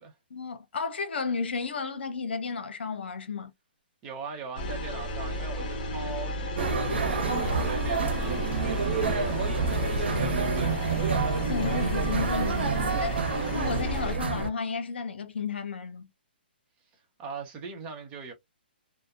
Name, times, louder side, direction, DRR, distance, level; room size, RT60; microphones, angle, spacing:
voice 1, 0.3-3.5 7.3-7.6 8.2-8.4 11.4-13.2 13.5-16.1, left 5 dB, 80° left, 0.7 m, -33 dB
voice 2, 4.0-11.2 16.9-18.3, right 4 dB, 20° right, 0.6 m, -41 dB
sound 1, 4.6-14.1, equal, 45° left, 1.0 m, -33 dB
sound 2, 6.6-14.5, right 4 dB, 80° right, 0.6 m, -28 dB
2.7 x 2.1 x 2.3 m
hypercardioid pair, 160°, 6 cm